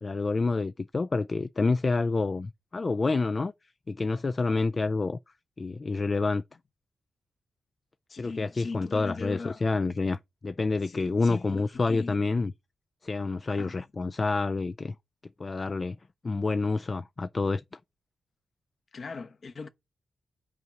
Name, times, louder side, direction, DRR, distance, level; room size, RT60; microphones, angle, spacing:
voice 1, 0.0-3.5 3.9-5.2 5.6-6.4 8.2-12.5 13.0-14.9 15.4-16.0 16.2-17.6, left 3 dB, 35° left, 0.4 m, -28 dB
voice 2, 8.1-9.6 10.8-12.2 13.5-13.8 18.9-19.7, left 4 dB, 50° left, 1.0 m, -40 dB
5.5 x 4.6 x 6.3 m
cardioid pair, 75°, 0 cm